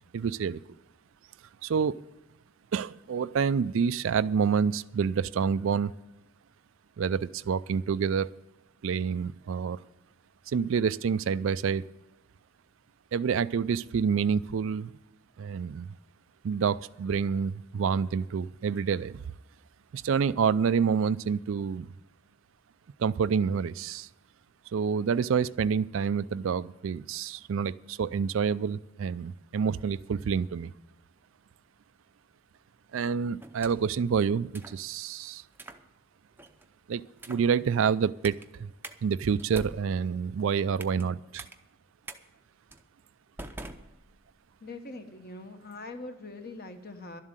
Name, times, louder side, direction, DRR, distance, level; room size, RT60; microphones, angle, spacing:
voice 1, 0.1-0.6 1.6-2.0 2.7-5.9 7.0-8.3 8.8-9.8 10.5-11.9 13.1-14.9 15.4-15.9 16.4-19.2 19.9-21.9 23.0-24.1 24.7-30.7 32.9-35.4 36.9-37.0 37.3-38.7 39.0-41.5, right 6 dB, 65° right, 16 dB, 0.3 m, -28 dB
sound 1, 33.4-34.0 34.5-34.8 35.5-35.8 36.4-36.7 37.2-37.5 38.2-38.5 38.8-39.0 39.4-41.1 41.4-41.5 42.1-42.2 42.7-42.9 43.4-44.4, right 2 dB, 10° right, 0.6 m, -45 dB
voice 2, 44.6-47.2, left 2 dB, 45° left, 7 dB, 1.2 m, -42 dB
12.0 x 7.4 x 9.0 m, 0.90 s
head